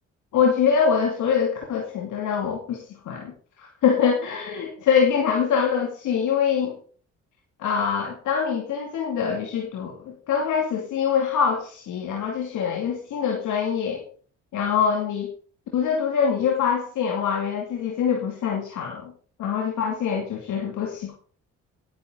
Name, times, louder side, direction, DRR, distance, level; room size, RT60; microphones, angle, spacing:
voice 1, 0.3-6.8 7.6-14.0 14.5-15.3 15.7-19.1 19.4-21.2, left 7 dB, 80° left, 0 dB, 2.7 m, -24 dB
17.5 x 10.5 x 4.0 m, 0.43 s
cardioid pair, 90°, 30 cm